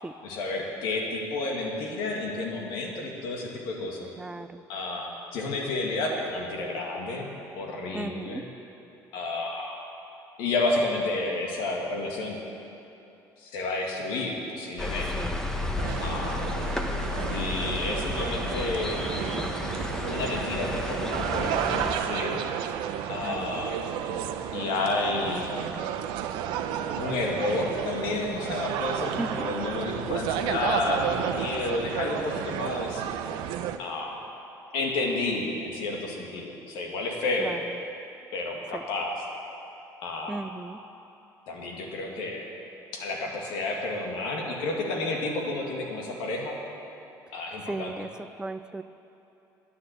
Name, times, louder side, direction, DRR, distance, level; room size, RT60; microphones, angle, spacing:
voice 1, 0.2-4.1 4.7-8.5 9.1-9.8 10.4-12.4 13.4-15.1 16.0-16.4 17.3-19.1 20.0-22.5 23.1-23.8 24.5-25.5 26.9-33.0 33.8-34.2 34.7-37.5 38.3-39.1 40.0-40.4 41.5-42.5 42.9-46.6 47.3-47.9, left 2 dB, 80° left, 0 dB, 2.1 m, -31 dB
voice 2, 4.2-4.6 7.9-8.5 15.2-15.5 16.8-17.0 23.2-23.6 29.2-29.5 37.4-37.8 38.7-38.9 40.3-40.8 47.3-47.4 47.7-48.8, right 2 dB, 10° right, 11 dB, 0.4 m, -36 dB
sound 1, 14.8-21.9, left 2 dB, 5° left, 1.0 m, -32 dB
sound 2, 15.8-33.8, right 9 dB, 80° right, 0.7 m, -32 dB
9.7 x 9.6 x 8.0 m, 2.9 s
cardioid pair, 100°, 8 cm